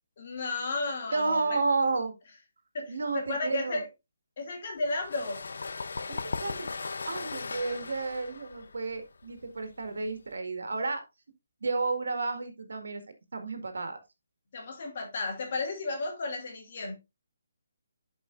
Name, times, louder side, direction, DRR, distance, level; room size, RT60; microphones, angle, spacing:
voice 1, 0.2-1.6 2.7-3.9 4.4-5.4 14.5-16.9, left 3 dB, 50° left, 2.4 m, -33 dB
voice 2, 1.1-2.1 2.9-3.8 6.1-11.0 11.6-13.0 13.3-14.0, right 3 dB, 80° right, 1.8 m, -31 dB
sound 1, 4.8-10.3, left 4 dB, 75° left, 0.6 m, -38 dB
11.0 x 5.1 x 2.5 m
hypercardioid pair, 160°, 0 cm